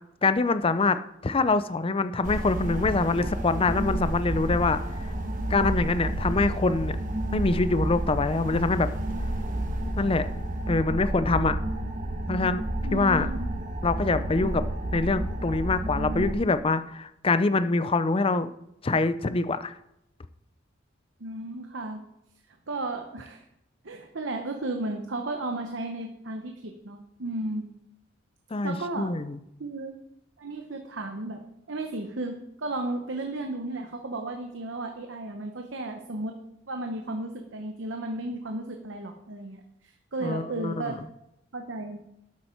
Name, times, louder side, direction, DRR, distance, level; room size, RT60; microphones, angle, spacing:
voice 1, 0.2-4.8 5.5-7.0 7.3-8.9 10.0-10.3 10.7-11.6 12.3-12.6 12.9-13.3 13.8-14.7 14.9-18.5 18.8-19.7 28.5-29.4 40.2-40.9, left 3 dB, 30° left, 13 dB, 0.5 m, -25 dB
sound 1, 2.2-16.3, right 1 dB, 45° right, 1.3 m, -30 dB
voice 2, 12.8-13.5 21.2-22.0 22.7-23.4 23.8-27.6 28.6-29.1 29.6-30.0 30.4-31.4 31.7-36.3 36.7-41.0 41.5-42.0, right 2 dB, 65° right, 4 dB, 1.0 m, -34 dB
12.0 x 8.5 x 4.5 m, 0.82 s
head